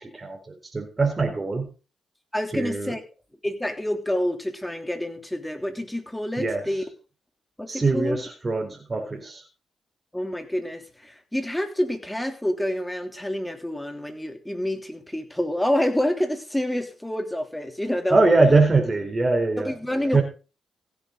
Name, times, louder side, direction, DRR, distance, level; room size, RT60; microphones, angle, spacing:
voice 1, 0.0-1.7 2.5-2.9 6.4-6.7 7.7-9.4 18.1-19.7 20.1-20.2, right 3 dB, 30° right, 2 dB, 4.1 m, -22 dB
voice 2, 2.3-3.0 3.4-6.8 7.6-8.2 10.1-18.2 19.6-20.2, left 1 dB, 10° left, 6 dB, 3.2 m, -28 dB
16.0 x 9.8 x 3.9 m, 0.34 s
supercardioid pair, 50°, 0 cm